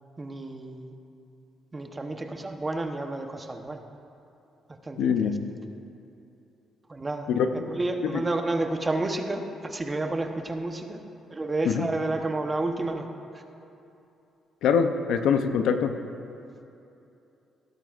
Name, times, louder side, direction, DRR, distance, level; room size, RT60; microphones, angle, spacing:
voice 1, 0.2-0.9 1.7-3.8 4.7-5.3 6.9-7.3 7.5-11.0 11.3-13.1 13.3-13.4, right 2 dB, 25° right, 5 dB, 1.0 m, -30 dB
voice 2, 5.0-5.4 7.3-7.5 11.7-11.9 14.6-15.9, left 7 dB, 80° left, 7 dB, 0.6 m, -23 dB
17.0 x 12.0 x 2.5 m, 2.8 s
cardioid pair, 90°, 0 cm